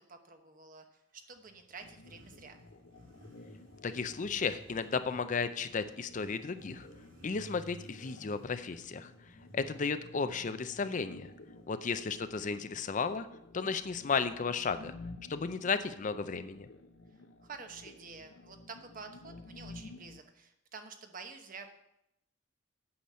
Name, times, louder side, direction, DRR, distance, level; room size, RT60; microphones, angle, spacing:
voice 1, 0.0-2.6 12.1-12.6 17.4-21.7, right 4 dB, 45° right, 6 dB, 1.0 m, -49 dB
Motorcycle, 1.1-13.8, left 1 dB, 75° right, 2.6 m, -56 dB
sound 1, 1.8-20.2, left 2 dB, 70° left, 0.8 m, -53 dB
voice 2, 3.8-6.9 7.2-9.1 9.5-11.3 11.7-13.3 13.5-14.9 15.3-16.7, left 5 dB, 40° left, 11 dB, 0.5 m, -34 dB
8.6 x 5.8 x 7.5 m, 0.83 s
head